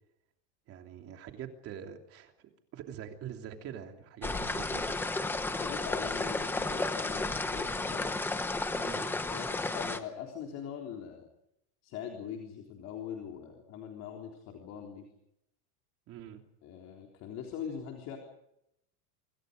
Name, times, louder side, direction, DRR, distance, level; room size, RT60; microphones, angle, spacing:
voice 1, 0.7-4.9 8.7-9.1 16.1-16.4, right 9 dB, 30° right, 4 dB, 3.1 m, -44 dB
sound 1, 4.2-10.0, left 2 dB, 5° left, 0.8 m, -33 dB
voice 2, 5.5-8.3 8.8-8.9 9.3-11.2 11.8-15.0 16.6-18.2, left 8 dB, 35° left, 1 dB, 3.8 m, -42 dB
28.0 x 26.0 x 5.2 m, 0.80 s
supercardioid pair, 180°, 47 cm